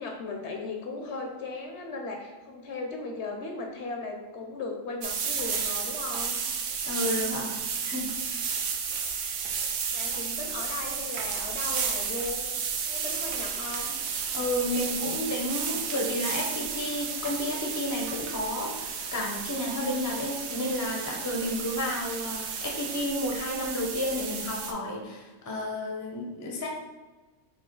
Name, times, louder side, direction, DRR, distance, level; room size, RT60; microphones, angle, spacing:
voice 1, 0.0-6.4 9.9-12.5 12.8-14.0, left 3 dB, 65° left, 2 dB, 0.8 m, -37 dB
sound 1, 5.0-24.7, right 6 dB, 85° right, 1.0 m, -32 dB
voice 2, 6.8-7.6 7.8-8.1 14.3-26.7, left 1 dB, 20° left, 0 dB, 0.4 m, -31 dB
sound 2, 13.1-23.0, right 5 dB, 65° right, 0.7 m, -46 dB
4.8 x 2.7 x 3.7 m, 1.2 s
omnidirectional pair, 1.4 m